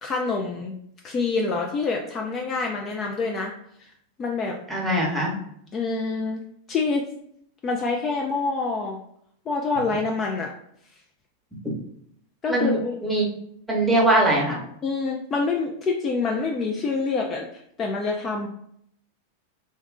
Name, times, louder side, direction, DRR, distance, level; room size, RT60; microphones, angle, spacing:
voice 1, 0.0-0.7 1.0-3.5 3.8-3.9 4.2-4.6 5.7-6.4 6.7-7.1 7.6-9.0 9.5-10.5 12.4-13.0 14.0-14.1 14.8-18.5, left 4 dB, 25° left, 0 dB, 0.4 m, -26 dB
voice 2, 4.7-5.3 12.5-13.3 13.7-14.6, right 1 dB, 10° right, -2 dB, 0.9 m, -21 dB
2.7 x 2.3 x 3.5 m, 0.70 s
figure-of-eight pair, 90°, 0 cm